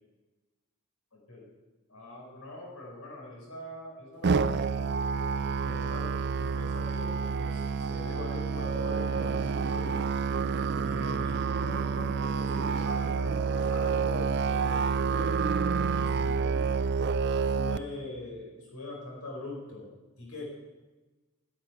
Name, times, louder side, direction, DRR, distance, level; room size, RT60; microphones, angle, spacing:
voice 1, 1.1-1.5 1.9-4.9 5.6-10.1 10.8-16.7 17.5-19.9 20.2-20.5, left 2 dB, 90° left, -3 dB, 4.9 m, -43 dB
Musical instrument, 4.2-17.8, right 5 dB, 50° right, 0.4 m, -28 dB
11.0 x 7.8 x 9.2 m, 1.2 s
head